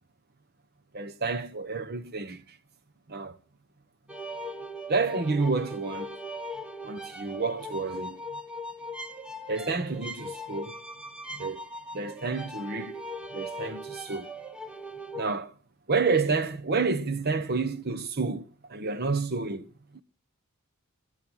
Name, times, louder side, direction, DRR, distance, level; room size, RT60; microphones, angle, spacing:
voice 1, 0.9-2.4 3.1-3.4 4.9-6.1 6.8-8.2 9.5-10.7 11.3-11.6 11.9-13.0 13.3-14.3 15.2-15.5 15.9-19.7, right 4 dB, 45° right, 1.0 m, -29 dB
sound 1, 4.1-15.4, equal, 5° right, 1.1 m, -39 dB
20.5 x 7.3 x 6.3 m
head